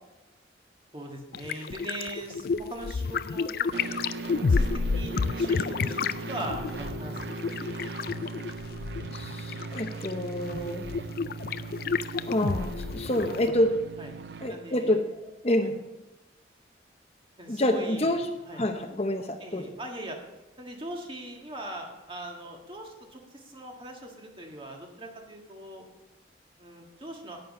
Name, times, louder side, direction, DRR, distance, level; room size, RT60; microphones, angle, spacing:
voice 1, 0.9-3.7 4.3-7.5 13.4-13.6 14.0-14.2 14.5-15.0 15.6-15.7 17.4-18.7 19.4-20.2 20.6-25.8 26.6-27.4, right 1 dB, 30° right, 1 dB, 1.7 m, -41 dB
sound 1, 1.3-13.5, left 4 dB, 55° left, 0.4 m, -30 dB
sound 2, 3.7-14.5, right 3 dB, 65° right, 0.5 m, -39 dB
voice 2, 9.1-10.9 12.3-13.7 14.4-15.0 15.4-15.7 17.5-18.2 18.6-19.7, left 1 dB, 35° left, 5 dB, 0.8 m, -27 dB
10.5 x 9.3 x 5.4 m, 1.0 s
head